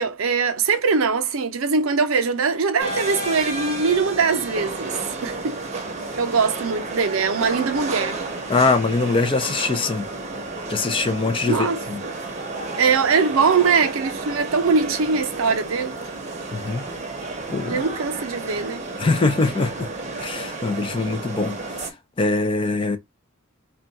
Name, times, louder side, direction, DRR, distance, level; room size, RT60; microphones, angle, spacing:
voice 1, 0.0-5.6 6.2-8.3 11.5-12.1 12.8-16.0 17.7-18.9, right 5 dB, 70° right, 0.6 m, -22 dB
sound 1, 2.8-21.9, right 3 dB, 35° right, 0.7 m, -31 dB
voice 2, 8.5-10.0 10.7-12.0 16.5-16.8 17.5-17.8 19.0-19.9 20.2-21.6 22.2-23.0, left 3 dB, 25° left, 0.4 m, -22 dB
2.3 x 2.2 x 3.9 m
head